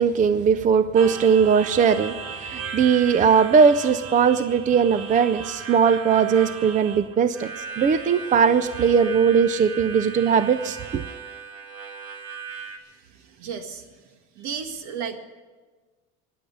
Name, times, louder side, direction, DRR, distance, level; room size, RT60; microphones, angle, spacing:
voice 1, 0.0-2.1 2.4-11.0, right 6 dB, 25° right, 13 dB, 0.5 m, -19 dB
Harmonica, 1.0-12.8, right 6 dB, 85° right, 1.9 m, -37 dB
voice 2, 12.9-14.0 14.4-15.2, right 7 dB, 70° right, 7 dB, 1.8 m, -34 dB
14.5 x 10.0 x 8.5 m, 1.3 s
cardioid pair, 140°, 29 cm